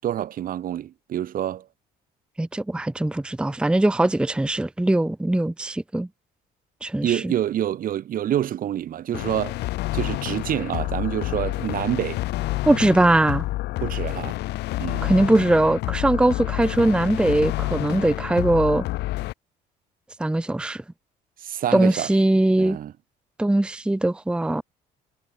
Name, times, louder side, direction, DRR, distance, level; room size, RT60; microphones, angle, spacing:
voice 1, 0.0-1.6 7.0-9.6 9.9-12.2 13.8-14.4 14.8-15.1 21.4-22.1 22.6-22.9, right 11 dB, 55° right, 1.6 m, -27 dB
voice 2, 2.4-6.1 6.8-7.3 12.7-13.4 15.0-18.8 20.2-20.8 21.7-22.8 23.4-24.6, right 1 dB, 5° right, 0.7 m, -21 dB
sound 1, 9.1-19.3, left 18 dB, 85° left, 4.6 m, -28 dB
cardioid pair, 110°, 17 cm